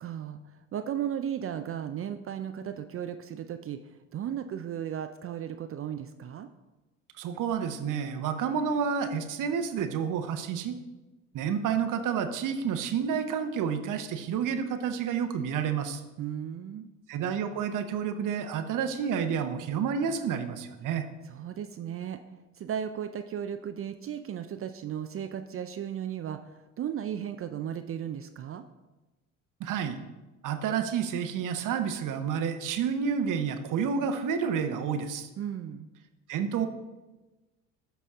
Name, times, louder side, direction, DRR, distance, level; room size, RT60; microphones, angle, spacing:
voice 1, 0.0-6.5 16.2-16.9 21.3-22.2 22.5-28.6 35.4-35.9, right 9 dB, 35° right, 9 dB, 0.5 m, -35 dB
voice 2, 7.2-10.8 11.3-16.0 17.1-21.1 29.6-30.0 30.4-35.3 36.3-36.7, right 7 dB, 55° right, 8 dB, 0.9 m, -29 dB
12.5 x 4.2 x 3.6 m, 1.1 s
hypercardioid pair, 60°, 38 cm